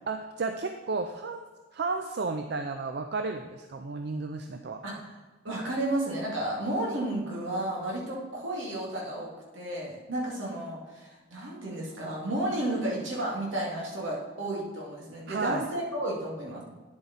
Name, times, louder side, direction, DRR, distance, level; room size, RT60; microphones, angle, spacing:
voice 1, 0.1-1.5 1.7-4.8 15.3-15.7, right 3 dB, 55° right, 6 dB, 0.4 m, -33 dB
voice 2, 5.4-16.6, right 1 dB, 75° right, -3 dB, 2.4 m, -32 dB
9.8 x 7.5 x 4.2 m, 1.3 s
head